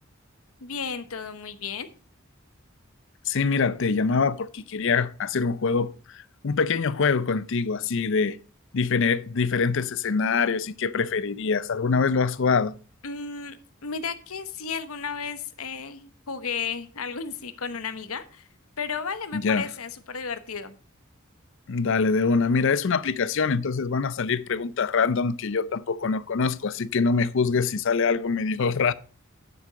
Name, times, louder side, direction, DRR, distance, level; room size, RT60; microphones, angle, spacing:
voice 1, 0.6-1.9 13.0-13.6 13.8-18.4 18.8-20.7, left 6 dB, 85° left, 1.0 m, -33 dB
voice 2, 3.3-5.9 6.4-8.4 8.7-12.7 19.3-19.7 21.7-28.9, left 5 dB, 60° left, 0.5 m, -24 dB
9.4 x 7.0 x 5.0 m
head